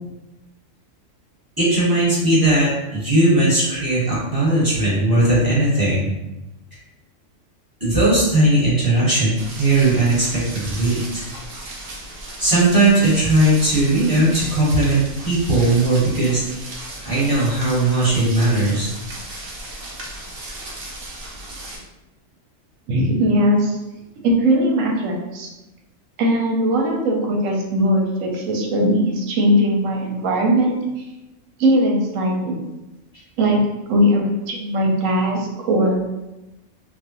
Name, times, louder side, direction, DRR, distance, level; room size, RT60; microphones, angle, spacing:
voice 1, 1.6-6.1 7.8-11.2 12.4-16.4 17.0-18.9, right 2 dB, 20° right, -9 dB, 1.1 m, -18 dB
sound 1, 9.4-21.8, right 1 dB, 55° right, 0.7 m, -35 dB
voice 2, 22.9-23.8 24.2-25.5 26.2-30.7 31.6-32.6 33.4-33.6 33.9-36.0, equal, 80° right, 0 dB, 1.0 m, -19 dB
3.2 x 2.1 x 2.9 m, 0.99 s
omnidirectional pair, 1.3 m